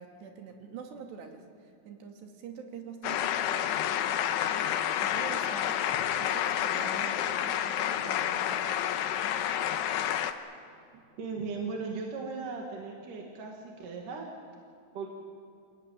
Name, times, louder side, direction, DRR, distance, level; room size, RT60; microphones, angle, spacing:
voice 1, 0.0-9.1 10.9-11.0, right 6 dB, 85° right, 2 dB, 4.7 m, -46 dB
sound 1, 3.0-10.3, left 10 dB, 90° left, 3.1 m, -29 dB
voice 2, 11.2-14.3 14.9-15.1, right 4 dB, 55° right, 0 dB, 3.5 m, -37 dB
28.0 x 18.0 x 9.3 m, 2.5 s
omnidirectional pair, 4.7 m